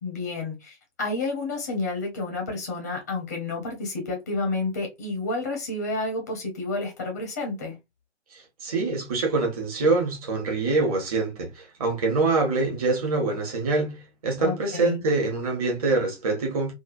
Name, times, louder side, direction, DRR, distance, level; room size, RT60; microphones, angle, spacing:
voice 1, 0.0-7.8 14.4-15.0, left 3 dB, 15° left, 0.5 m, -30 dB
voice 2, 8.3-16.7, right 3 dB, 30° right, 1.2 m, -25 dB
3.3 x 2.1 x 2.5 m
figure-of-eight pair, 140°, 36 cm